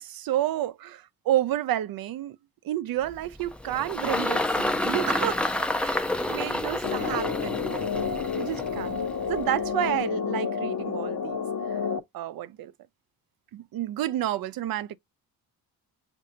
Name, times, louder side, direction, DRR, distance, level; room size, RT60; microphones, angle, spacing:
voice 1, 0.0-2.4 2.6-5.4 5.8-7.6 8.3-9.0 9.3-11.4 11.7-11.8 12.1-12.7 13.5-15.0, right 13 dB, 65° right, 0.6 m, -30 dB
Engine, 3.1-9.7, left 1 dB, 5° left, 0.4 m, -29 dB
sound 1, 6.8-12.0, left 6 dB, 55° left, 0.7 m, -30 dB
6.5 x 2.6 x 2.5 m
cardioid pair, 120°, 37 cm